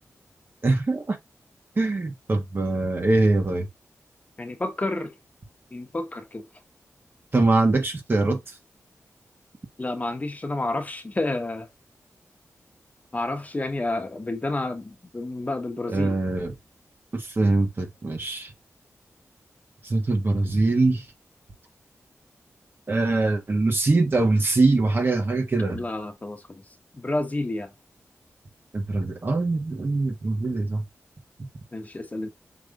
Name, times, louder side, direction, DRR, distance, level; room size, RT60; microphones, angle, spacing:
voice 1, 0.6-1.2 1.8-3.7 7.3-8.4 15.9-16.5 17.1-18.5 19.8-21.0 22.9-25.8 28.7-30.8, right 2 dB, 45° right, 1.6 m, -23 dB
voice 2, 4.4-5.1 5.7-6.5 9.8-11.7 13.1-16.2 25.6-26.6 26.9-27.7 31.7-32.3, left 2 dB, 30° left, 1.3 m, -30 dB
5.9 x 3.5 x 2.6 m
wide cardioid pair, 85°, 5 cm